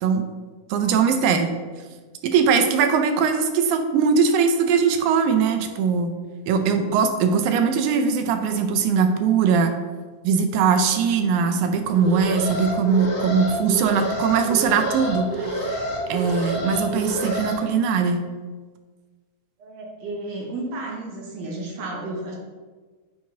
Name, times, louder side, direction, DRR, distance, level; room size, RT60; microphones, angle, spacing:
voice 1, 0.7-1.5 2.2-6.2 6.5-9.7 10.2-15.8 16.1-18.3, right 6 dB, 85° right, 7 dB, 2.1 m, -21 dB
Alarm, 11.9-17.5, right 1 dB, 50° left, 1.5 m, -28 dB
voice 2, 19.6-22.4, right 2 dB, 70° right, 0 dB, 1.8 m, -32 dB
8.1 x 4.7 x 2.7 m, 1.4 s
omnidirectional pair, 3.4 m